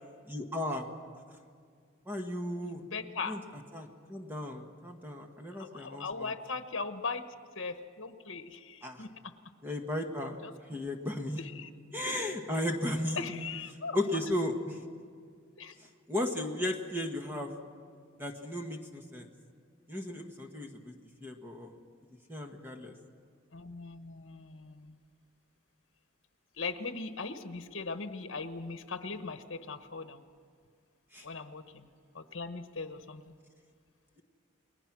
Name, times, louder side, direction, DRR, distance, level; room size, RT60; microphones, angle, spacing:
voice 1, 0.3-0.9 2.1-2.8 3.2-3.4 3.7-6.3 8.8-9.1 9.6-10.4 10.7-11.4 11.9-13.2 13.9-14.8 15.8-17.5 18.2-19.3 19.9-20.9 21.2-21.7 22.3-22.9 31.1-31.2, left 1 dB, 10° right, 3 dB, 1.6 m, -35 dB
voice 2, 2.6-3.4 5.7-7.2 7.6-9.3 10.4-10.8 11.4-11.7 13.2-14.0 15.6-15.7 23.5-24.9 26.6-30.2 31.2-31.9 32.1-33.3, left 4 dB, 65° left, 8 dB, 1.2 m, -39 dB
30.0 x 21.5 x 6.2 m, 2.1 s
head